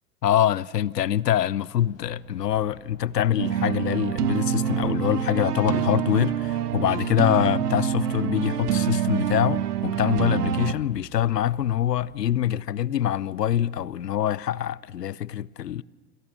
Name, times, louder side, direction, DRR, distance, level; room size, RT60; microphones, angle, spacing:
voice 1, 0.2-15.8, left 11 dB, 75° left, 0.8 m, -24 dB
sound 1, 1.8-12.2, left 5 dB, 30° left, 6.2 m, -49 dB
sound 2, 3.4-10.7, right 9 dB, 70° right, 1.4 m, -26 dB
28.0 x 26.5 x 7.6 m
figure-of-eight pair, 90°, 48 cm